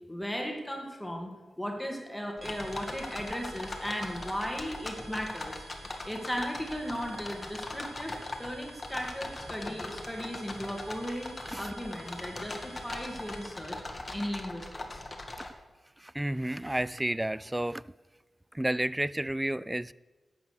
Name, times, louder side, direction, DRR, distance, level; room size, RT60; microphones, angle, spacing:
voice 1, 0.1-1.3 1.6-5.6 6.0-13.8 14.1-15.0, equal, 5° left, 2.2 m, -36 dB
sound 1, 2.4-15.5, left 2 dB, 30° left, 1.6 m, -40 dB
sound 2, 2.4-13.8, right 3 dB, 40° right, 2.1 m, -53 dB
voice 2, 16.0-17.8 18.5-19.9, right 1 dB, 10° right, 0.3 m, -31 dB
12.0 x 8.6 x 6.7 m
wide cardioid pair, 100°, 0 cm